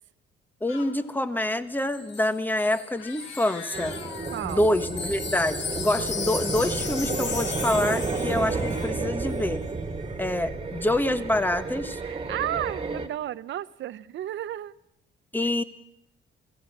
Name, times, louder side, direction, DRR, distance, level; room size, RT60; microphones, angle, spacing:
voice 1, 0.6-4.0 4.4-9.6 10.2-12.0 15.3-15.6, left 1 dB, 10° left, 10 dB, 1.4 m, -26 dB
sound 1, 0.7-8.9, left 7 dB, 85° left, 1.5 m, -47 dB
Wind chime, 1.8-9.0 9.3-9.5, left 5 dB, 60° left, 2.2 m, -36 dB
sound 2, 3.7-13.1, right 4 dB, 30° right, 2.1 m, -31 dB
voice 2, 4.3-4.7 8.6-8.8 12.0-14.7, right 12 dB, 70° right, 16 dB, 0.8 m, -33 dB
29.0 x 17.0 x 6.1 m, 0.80 s
cardioid pair, 90°, 20 cm